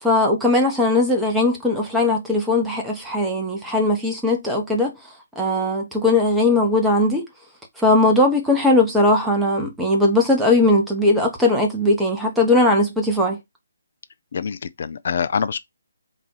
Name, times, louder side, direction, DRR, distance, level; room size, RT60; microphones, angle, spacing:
voice 1, 0.0-4.9 5.4-7.3 7.8-13.4, left 2 dB, 5° right, 1.0 m, -19 dB
voice 2, 14.3-15.6, left 6 dB, 50° left, 0.5 m, -25 dB
4.0 x 2.6 x 4.6 m
figure-of-eight pair, 145°, 0 cm